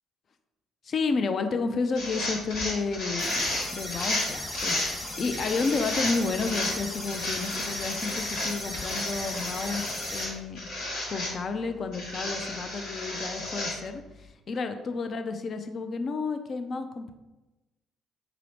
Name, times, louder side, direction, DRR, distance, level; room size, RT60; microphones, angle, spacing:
voice 1, 0.8-10.6 11.1-17.1, left 4 dB, 50° left, 8 dB, 0.4 m, -31 dB
sound 1, 1.9-4.9 5.3-6.7 7.1-10.3 10.6-11.3 11.9-13.8, left 1 dB, 70° left, 1.0 m, -32 dB
sound 2, 3.2-10.2, left 1 dB, 25° left, 1.1 m, -37 dB
4.7 x 2.0 x 3.1 m, 1.1 s
hypercardioid pair, 45°, 0 cm